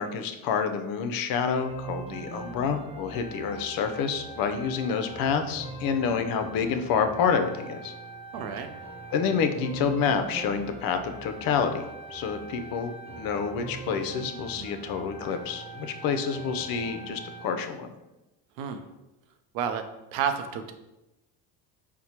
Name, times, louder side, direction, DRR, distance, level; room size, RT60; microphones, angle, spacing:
voice 1, 0.0-7.9 9.1-17.9, left 6 dB, 50° left, 7 dB, 0.5 m, -28 dB
sound 1, 1.6-17.6, right 3 dB, 15° right, 0.4 m, -41 dB
voice 2, 8.3-8.7 18.6-18.8 19.5-19.8 20.1-20.7, right 7 dB, 80° right, 8 dB, 0.6 m, -30 dB
4.3 x 2.1 x 2.8 m, 0.96 s
supercardioid pair, 105°, 46 cm